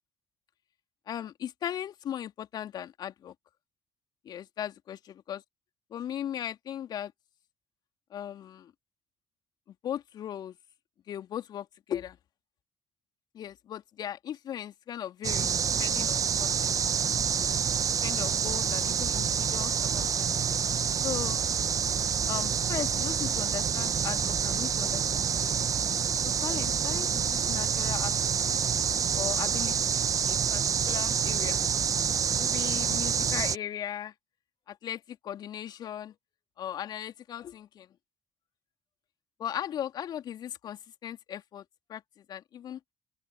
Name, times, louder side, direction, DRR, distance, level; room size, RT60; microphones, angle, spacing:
voice 1, 1.1-3.3 4.2-5.0 5.3-5.4 5.9-7.1 8.1-8.7 9.7-10.6 11.1-12.2 13.3-15.5 15.8-16.7 18.0-20.4 21.0-21.4 22.3-25.7 26.2-28.1 28.5-28.6 29.1-31.6 32.4-34.1 34.7-36.1 36.6-37.9 39.4-41.6 41.9-42.8, left 10 dB, 55° left, 2.8 m, -38 dB
sound 1, 15.2-33.6, right 7 dB, 40° right, 1.6 m, -27 dB
open air
figure-of-eight pair, 50°, 9 cm